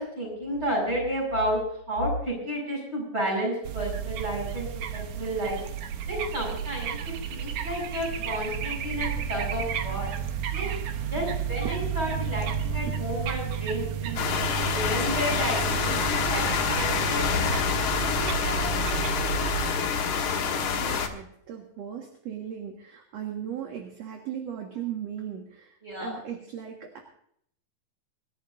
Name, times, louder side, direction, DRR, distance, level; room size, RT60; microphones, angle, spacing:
voice 1, 0.0-1.6 1.9-5.6 6.1-10.1 10.5-10.7 11.0-14.2 14.7-19.7 25.8-26.2, equal, 15° right, -1 dB, 7.2 m, -32 dB
sound 1, 3.6-19.7, right 8 dB, 70° right, 1.6 m, -32 dB
sound 2, 14.2-21.1, left 6 dB, 60° left, 2.6 m, -27 dB
voice 2, 20.1-27.0, right 9 dB, 55° right, 2 dB, 2.5 m, -38 dB
26.0 x 12.0 x 2.6 m, 0.67 s
omnidirectional pair, 4.1 m